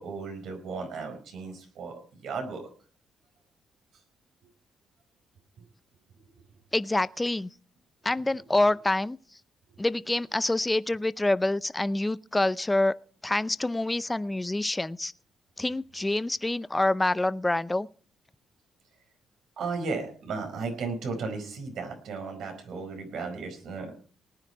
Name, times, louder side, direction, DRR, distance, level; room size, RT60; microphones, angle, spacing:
voice 1, 0.0-2.6 19.6-23.9, right 4 dB, 75° right, 4.7 m, -35 dB
voice 2, 6.7-7.5 8.0-9.2 9.8-13.0 13.2-15.1 15.6-17.9, left 2 dB, 15° left, 0.6 m, -26 dB
19.0 x 9.8 x 4.7 m
cardioid pair, 90°, 0 cm